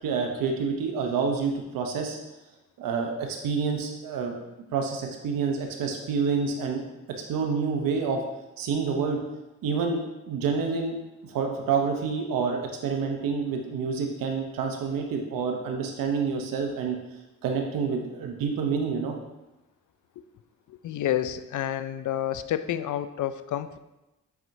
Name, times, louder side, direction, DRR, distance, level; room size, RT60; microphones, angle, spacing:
voice 1, 0.0-2.2 2.8-4.4 4.7-6.8 7.1-8.2 8.6-9.2 9.6-11.0 11.2-17.0 17.4-19.2, right 5 dB, 85° right, 3 dB, 0.9 m, -28 dB
voice 2, 20.7-23.8, left 11 dB, 65° left, 12 dB, 0.5 m, -29 dB
8.0 x 4.4 x 2.7 m, 0.99 s
supercardioid pair, 45°, 33 cm